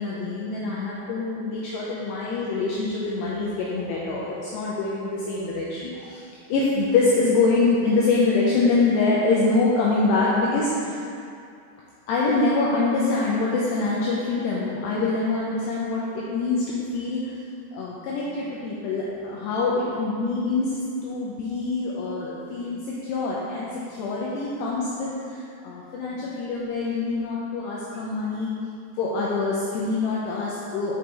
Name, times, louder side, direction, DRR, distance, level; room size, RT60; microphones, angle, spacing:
voice 1, 0.0-6.2 6.5-11.0 12.1-17.2 17.7-20.7 21.0-25.1 25.6-28.5 29.0-31.0, left 3 dB, 90° left, -5 dB, 2.4 m, -25 dB
6.4 x 5.9 x 3.4 m, 2.5 s
omnidirectional pair, 5.5 m